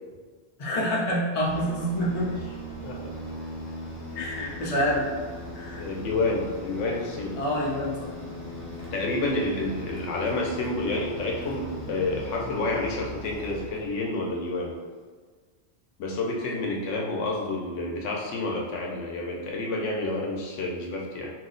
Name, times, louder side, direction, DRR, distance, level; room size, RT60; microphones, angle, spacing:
voice 1, 0.6-2.5 4.1-5.1 5.5-5.8 7.4-8.1, equal, 40° left, -5 dB, 0.6 m, -27 dB
sound 1, 1.4-14.2, equal, 60° left, 1.0 m, -39 dB
voice 2, 5.8-7.4 8.9-14.8 16.0-21.3, left 2 dB, 90° left, -1 dB, 0.9 m, -29 dB
2.7 x 2.0 x 3.7 m, 1.5 s
omnidirectional pair, 1.2 m